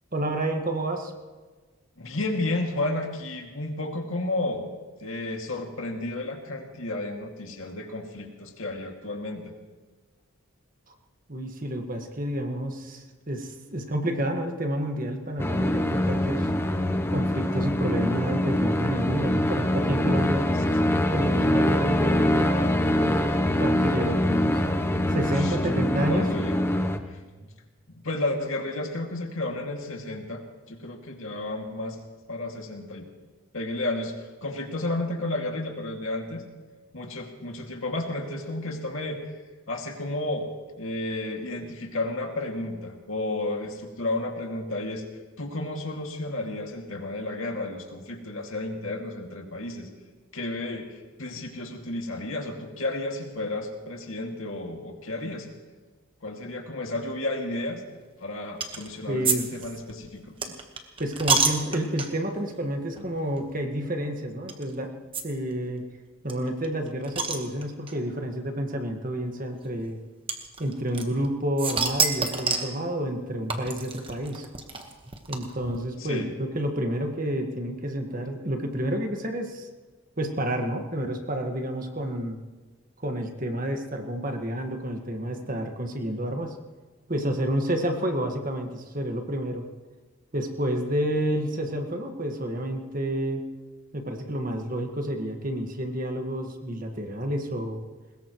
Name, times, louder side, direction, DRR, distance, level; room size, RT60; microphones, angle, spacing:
voice 1, 0.1-1.1 11.3-16.5 17.1-20.5 21.1-23.3 23.6-24.6 25.1-26.3 59.1-59.5 60.4-60.5 61.0-64.9 65.2-65.8 66.2-70.0 70.6-74.5 75.3-79.7 80.2-82.4 83.0-86.6 87.1-89.6 90.3-93.4 93.9-97.8, right 1 dB, 40° right, 4 dB, 1.6 m, -29 dB
voice 2, 2.0-4.6 5.0-9.5 25.3-26.6 27.1-27.5 27.9-30.4 30.7-32.0 32.3-33.0 33.5-36.5 36.9-39.3 39.7-40.5 40.8-45.0 45.4-49.9 50.3-55.5 56.2-57.8 58.2-60.3 76.0-76.3, left 2 dB, 70° left, 2 dB, 2.3 m, -32 dB
sound 1, 15.4-27.0, left 1 dB, 10° left, 0.8 m, -24 dB
sound 2, 58.6-58.9 59.3-59.4 59.6-62.3 63.0-63.1 63.4-63.5 64.5-64.6 65.1-65.2 65.5-65.6 65.8-65.9 66.3-67.9 68.8-68.9 70.3-71.3 71.6-72.8 73.5-75.8, right 4 dB, 25° right, 1.3 m, -28 dB
22.0 x 20.5 x 3.1 m, 1.3 s
head